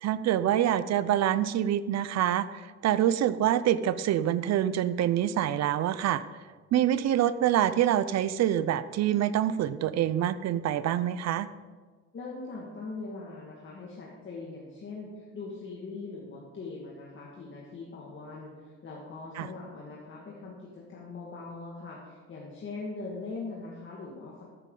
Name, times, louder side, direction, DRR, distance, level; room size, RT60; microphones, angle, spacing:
voice 1, 0.0-2.5 2.8-6.2 6.7-11.5 19.4-19.5, right 11 dB, 60° right, 15 dB, 0.5 m, -26 dB
voice 2, 12.1-24.4, left 3 dB, 40° left, -4 dB, 1.9 m, -41 dB
14.0 x 9.1 x 3.8 m, 1.5 s
cardioid pair, 135°, 31 cm